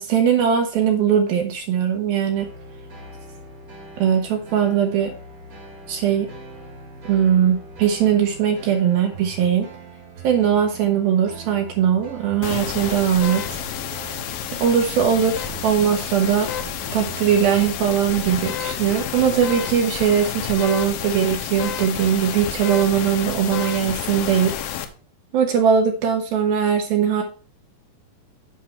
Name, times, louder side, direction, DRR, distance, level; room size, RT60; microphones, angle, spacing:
voice 1, 0.0-2.5 4.0-5.1 5.9-6.3 7.1-9.7 10.2-13.6 14.6-16.5 16.9-24.5 25.3-27.2, right 8 dB, 75° right, 4 dB, 2.4 m, -20 dB
sound 1, 2.4-20.0, right 3 dB, 40° right, 1.3 m, -41 dB
sound 2, 12.4-24.9, left 9 dB, 75° left, 2.3 m, -30 dB
7.6 x 5.9 x 4.5 m, 0.39 s
omnidirectional pair, 4.7 m